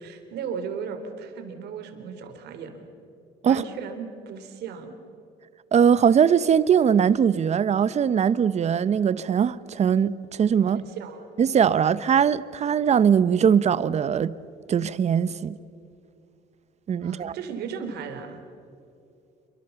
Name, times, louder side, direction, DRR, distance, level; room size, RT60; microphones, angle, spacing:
voice 1, 0.0-2.9 3.4-5.0 10.7-11.3 17.0-18.4, right 6 dB, 75° right, 3.2 m, -36 dB
voice 2, 5.7-10.8 11.4-14.3 14.7-15.5 16.9-17.4, right 7 dB, 40° right, 0.8 m, -21 dB
28.0 x 24.0 x 7.0 m
cardioid pair, 110°, 17 cm